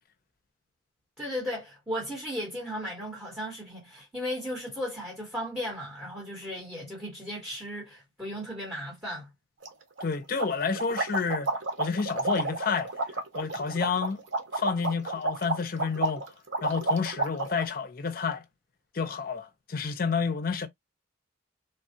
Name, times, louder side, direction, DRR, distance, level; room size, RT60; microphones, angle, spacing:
voice 1, 1.2-9.3, equal, 10° right, 1.2 m, -36 dB
sound 1, 9.6-9.7 10.0-10.1 10.4-17.7, right 3 dB, 90° right, 0.9 m, -31 dB
voice 2, 10.0-11.5 11.8-12.9 13.3-14.2 14.5-16.3 16.6-18.4 18.9-20.7, left 5 dB, 50° left, 0.5 m, -29 dB
3.3 x 2.3 x 2.6 m
head